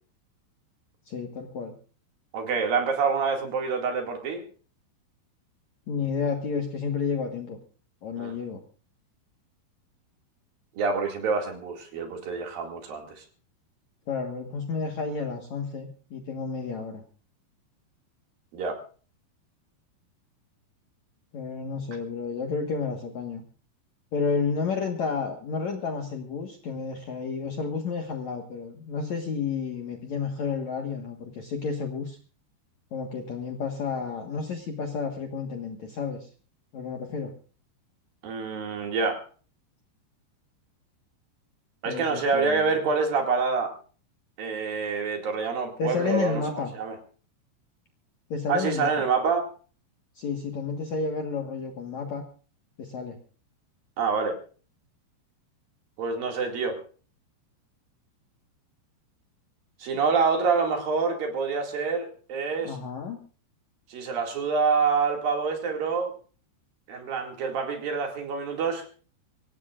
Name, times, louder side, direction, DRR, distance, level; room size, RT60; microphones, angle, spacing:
voice 1, 1.1-1.7 5.9-7.6 8.0-8.6 14.1-17.0 21.3-23.4 24.1-32.2 32.9-36.3 36.7-37.3 41.8-42.7 45.8-46.7 48.3-49.0 50.2-52.2 52.8-53.2 62.6-63.2, left 5 dB, 55° left, 3 dB, 2.1 m, -31 dB
voice 2, 2.3-4.4 8.2-8.4 10.8-13.2 18.5-18.8 38.2-39.2 41.8-43.7 44.4-47.0 48.5-49.5 54.0-54.4 56.0-56.8 59.8-62.8 63.9-66.1 66.9-69.0, right 5 dB, 55° right, 3 dB, 3.8 m, -27 dB
25.0 x 17.0 x 2.5 m, 0.39 s
omnidirectional pair, 5.2 m